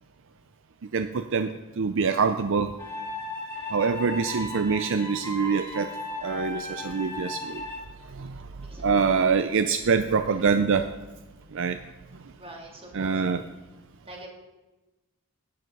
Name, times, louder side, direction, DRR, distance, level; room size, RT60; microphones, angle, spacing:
voice 1, 0.9-2.7 3.7-5.9 6.2-7.6 8.1-8.4 8.8-10.9 11.5-11.8 12.9-13.4, right 5 dB, 60° right, 9 dB, 0.5 m, -25 dB
sound 1, 2.8-7.8, left 2 dB, 15° left, 2.6 m, -36 dB
voice 2, 8.6-9.0 12.3-13.2 14.0-14.3, right 1 dB, 25° right, 0 dB, 2.7 m, -44 dB
12.0 x 9.3 x 5.3 m, 1.1 s
head